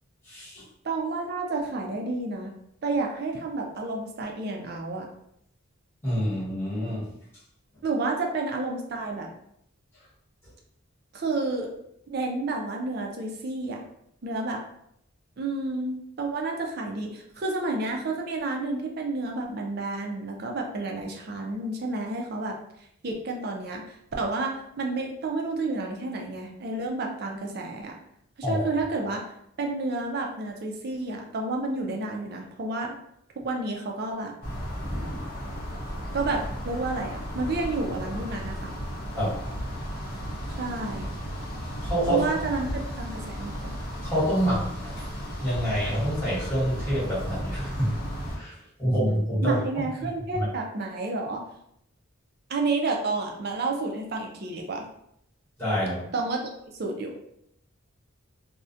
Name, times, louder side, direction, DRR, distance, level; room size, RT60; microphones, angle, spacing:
voice 1, 0.2-0.6 6.0-7.0 28.4-28.6 35.1-35.2 39.1-39.3 41.9-42.5 44.0-45.1 45.4-48.0 48.3-49.6 50.0-50.1 50.3-50.5 55.6-56.0, equal, 10° left, -10 dB, 1.2 m, -27 dB
voice 2, 0.8-2.5 2.8-5.1 7.8-9.3 11.1-11.7 12.1-13.8 14.2-14.6 15.4-22.6 23.0-27.9 28.5-29.2 29.6-32.9 33.4-34.3 36.1-38.7 40.6-41.1 42.1-43.8 49.4-51.5 52.5-54.8 56.1-56.5 56.8-57.1, right 3 dB, 45° right, 2 dB, 0.4 m, -30 dB
sound 1, 34.4-48.4, equal, 40° left, 0.8 m, -34 dB
2.4 x 2.1 x 2.6 m, 0.75 s
head